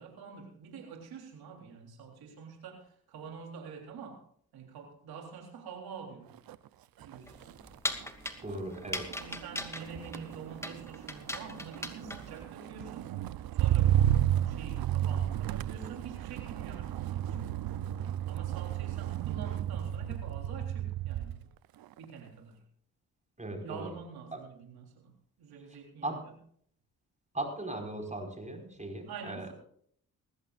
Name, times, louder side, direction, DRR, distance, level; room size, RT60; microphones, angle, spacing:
voice 1, 0.0-4.2 4.5-6.4 7.0-7.4 9.1-13.1 13.5-17.5 18.3-21.4 22.0-22.6 23.6-25.1 25.4-26.4 29.1-29.5, right 5 dB, 90° right, 1 dB, 3.7 m, -47 dB
Motor vehicle (road), 6.3-6.7 7.0-21.5 21.8-22.3, right 12 dB, 75° right, 0.7 m, -32 dB
sound 1, 7.2-12.4, left 1 dB, 5° left, 2.5 m, -39 dB
voice 2, 8.4-9.1 23.4-23.9 24.3-24.4 26.0-26.2 27.3-29.5, right 2 dB, 20° right, 4 dB, 5.0 m, -38 dB
20.0 x 15.5 x 2.5 m, 0.62 s
cardioid pair, 70°, 36 cm